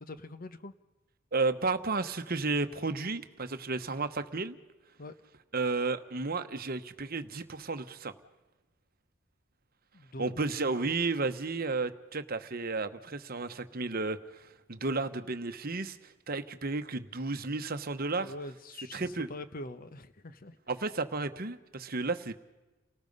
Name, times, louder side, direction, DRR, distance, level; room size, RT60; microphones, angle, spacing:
voice 1, 0.0-0.7 5.0-5.1 9.9-10.7 18.2-20.6, left 1 dB, 40° left, 12 dB, 0.9 m, -44 dB
voice 2, 1.3-4.6 5.5-8.1 10.2-18.3 18.9-19.3 20.7-22.3, right 3 dB, 45° right, 10 dB, 1.1 m, -33 dB
30.0 x 19.0 x 5.4 m, 1.1 s
head